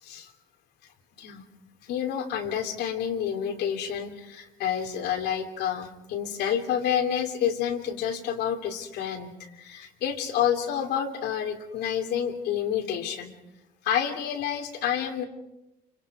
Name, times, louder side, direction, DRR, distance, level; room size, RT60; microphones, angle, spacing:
voice 1, 1.9-13.3 13.8-15.2, left 9 dB, 80° left, 5 dB, 2.8 m, -29 dB
29.0 x 25.0 x 4.8 m, 0.92 s
cardioid pair, 110°, 17 cm